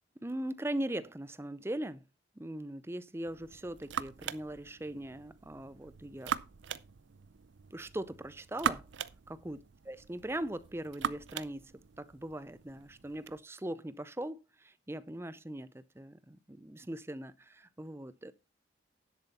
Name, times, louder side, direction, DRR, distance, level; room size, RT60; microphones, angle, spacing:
voice 1, 0.2-2.0 2.4-6.4 7.7-8.9 9.3-9.6 9.9-18.3, right 1 dB, 15° right, 0.6 m, -40 dB
sound 1, 3.2-13.4, right 7 dB, 80° right, 0.6 m, -41 dB
10.5 x 7.9 x 4.1 m
head